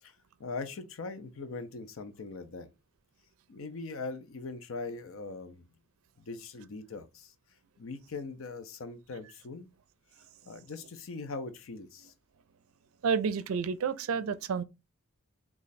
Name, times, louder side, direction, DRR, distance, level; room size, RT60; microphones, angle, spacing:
voice 1, 0.0-2.7 3.5-5.6 6.3-7.3 7.8-9.7 10.4-12.1, left 3 dB, 70° left, 0.6 m, -41 dB
voice 2, 13.0-14.6, right 6 dB, 80° right, 0.4 m, -30 dB
3.1 x 2.4 x 4.0 m
head